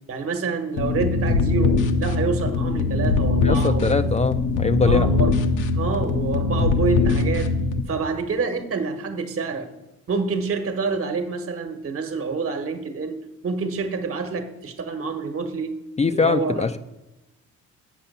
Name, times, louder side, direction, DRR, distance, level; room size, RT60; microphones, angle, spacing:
voice 1, 0.1-4.0 4.8-5.4 5.7-7.5 7.9-9.7 10.1-13.2 13.4-15.7 16.1-16.6, right 4 dB, 50° right, 7 dB, 1.2 m, -27 dB
sound 1, 0.8-7.8, left 3 dB, 85° left, 1.0 m, -21 dB
voice 2, 3.4-5.1 16.0-16.8, left 4 dB, 25° left, 9 dB, 0.4 m, -22 dB
8.1 x 5.9 x 6.7 m, 0.99 s
cardioid pair, 90°, 30 cm